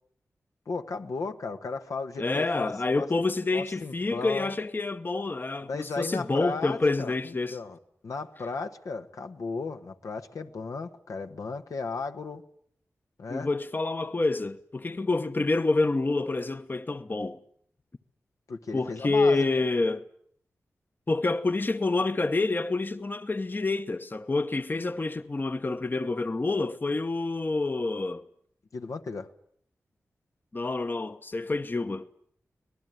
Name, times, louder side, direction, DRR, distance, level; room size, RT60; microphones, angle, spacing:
voice 1, 0.7-3.1 3.5-4.5 5.6-12.4 13.2-13.5 18.5-19.6 28.7-29.3, left 4 dB, 75° left, 1.4 m, -35 dB
voice 2, 2.2-7.6 13.3-17.4 18.7-20.0 21.1-28.2 30.5-32.1, left 3 dB, 35° left, 1.0 m, -28 dB
25.0 x 19.0 x 9.2 m
cardioid pair, 55°, 6 cm